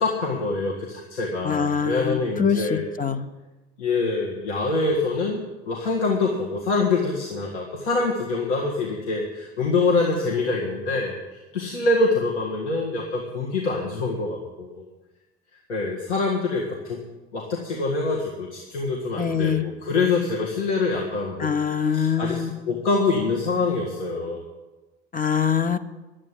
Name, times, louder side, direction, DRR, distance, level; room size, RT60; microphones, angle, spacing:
voice 1, 0.0-2.8 3.8-11.2 11.5-14.9 15.7-17.0 17.3-21.5 21.8-24.4, left 3 dB, 85° left, -3 dB, 1.8 m, -25 dB
voice 2, 1.4-3.3 19.2-19.6 21.4-22.5 25.1-25.8, left 7 dB, 25° left, 12 dB, 0.9 m, -24 dB
11.0 x 8.8 x 9.8 m, 1.1 s
hypercardioid pair, 65°, 34 cm